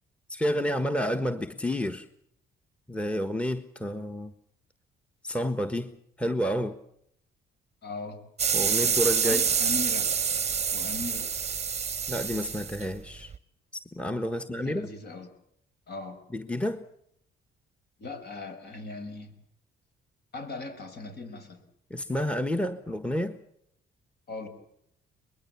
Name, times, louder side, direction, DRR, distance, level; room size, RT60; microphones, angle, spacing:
voice 1, 0.3-2.1 2.9-4.3 5.2-6.8 8.5-9.4 12.1-13.3 13.9-14.9 16.3-16.8 21.9-23.4, equal, 5° left, 1.4 m, -30 dB
voice 2, 7.8-8.2 9.2-10.1 10.7-11.3 14.3-15.3 15.9-16.2 18.0-19.3 20.3-21.6 24.3-24.5, left 3 dB, 55° left, 5.6 m, -38 dB
sound 1, 8.4-13.4, right 6 dB, 35° right, 0.9 m, -27 dB
23.0 x 21.5 x 7.1 m
cardioid pair, 90°, 20 cm